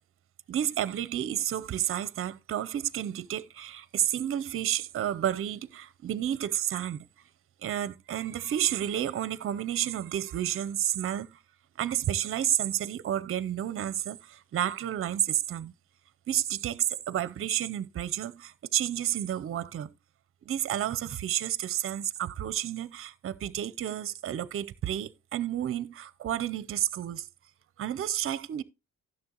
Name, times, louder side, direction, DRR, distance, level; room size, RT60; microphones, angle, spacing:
voice 1, 0.5-7.1 7.6-11.4 11.8-15.7 16.3-19.9 20.5-27.3 27.8-28.6, right 11 dB, 45° right, 0.6 m, -31 dB
11.5 x 6.6 x 2.9 m
cardioid pair, 90°, 30 cm